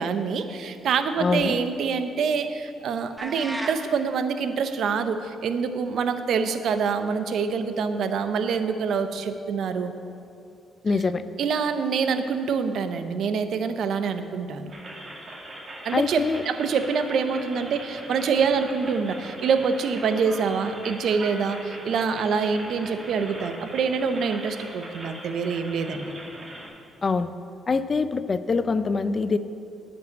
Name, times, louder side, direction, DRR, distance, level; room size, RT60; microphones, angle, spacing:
voice 1, 0.0-9.9 11.4-14.7 15.8-26.2, right 5 dB, 70° right, 9 dB, 0.7 m, -26 dB
voice 2, 1.2-1.5 10.8-11.2 15.9-16.4 27.0-27.3 27.7-29.4, left 4 dB, 35° left, 13 dB, 0.5 m, -24 dB
sound 1, 3.2-3.8, right 1 dB, 10° right, 1.1 m, -33 dB
sound 2, 14.7-26.7, right 1 dB, 35° right, 2.2 m, -40 dB
9.7 x 5.4 x 8.1 m, 2.6 s
cardioid pair, 90°, 0 cm